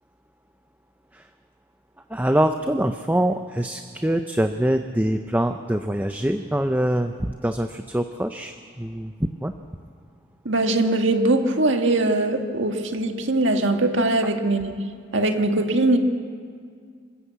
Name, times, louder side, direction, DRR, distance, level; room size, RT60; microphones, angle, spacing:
voice 1, 2.1-9.5, right 1 dB, 10° right, 7 dB, 0.6 m, -24 dB
voice 2, 10.5-14.8 15.1-16.0, right 2 dB, 70° right, 5 dB, 1.8 m, -21 dB
27.0 x 14.5 x 8.2 m, 2.1 s
head